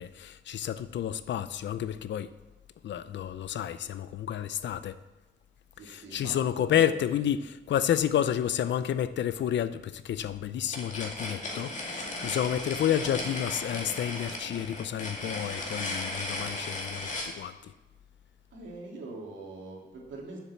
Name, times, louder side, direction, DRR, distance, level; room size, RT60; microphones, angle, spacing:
voice 1, 0.0-2.3 2.8-4.9 5.9-17.7, left 10 dB, 70° left, 0.5 m, -30 dB
voice 2, 5.8-7.0 12.4-12.7 18.5-20.4, right 2 dB, 75° right, 2.7 m, -43 dB
sound 1, 10.7-17.3, left 2 dB, 40° left, 2.2 m, -36 dB
7.4 x 7.2 x 7.1 m
wide cardioid pair, 130°, 19 cm